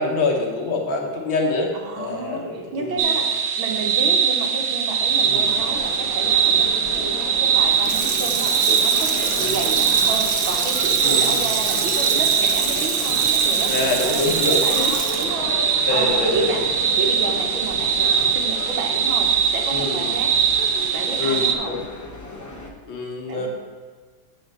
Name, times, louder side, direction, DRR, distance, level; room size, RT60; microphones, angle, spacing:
voice 1, 0.0-1.7 2.0-3.2 5.3-5.5 9.4-9.6 11.0-11.4 13.7-14.9 15.9-16.6 17.7-17.8 18.2-18.3 19.7-20.2 21.2-21.8 22.9-23.5, left 3 dB, 80° left, 0 dB, 2.0 m, -25 dB
voice 2, 1.7-14.2 14.5-16.6 16.9-20.3 20.9-21.8 23.2-23.5, right 3 dB, 85° right, 2 dB, 1.9 m, -31 dB
sound 1, 3.0-21.5, right 7 dB, 70° right, 1.2 m, -21 dB
sound 2, 4.9-22.7, left 1 dB, 20° left, 0.5 m, -34 dB
Water tap faucet / Sink (filling or washing), 7.7-16.9 17.3-17.4, right 5 dB, 55° right, 1.0 m, -28 dB
7.1 x 5.0 x 6.7 m, 1.5 s
omnidirectional pair, 2.1 m